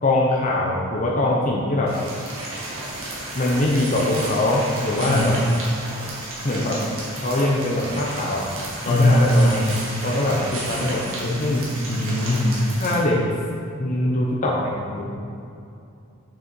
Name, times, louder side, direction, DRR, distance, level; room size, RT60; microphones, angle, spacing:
voice 1, 0.0-1.9 3.3-5.4 6.4-6.8 7.2-8.4 8.8-9.6 10.0-11.6 12.8-13.2 13.8-15.0, left 1 dB, 35° left, -3 dB, 0.8 m, -22 dB
sound 1, 1.9-12.9, right 1 dB, 70° right, 1.9 m, -33 dB
voice 2, 5.1-5.4 8.9-9.8 11.2-11.6 11.9-12.6, left 1 dB, 85° left, -4 dB, 1.7 m, -20 dB
6.7 x 6.5 x 4.4 m, 2.6 s
head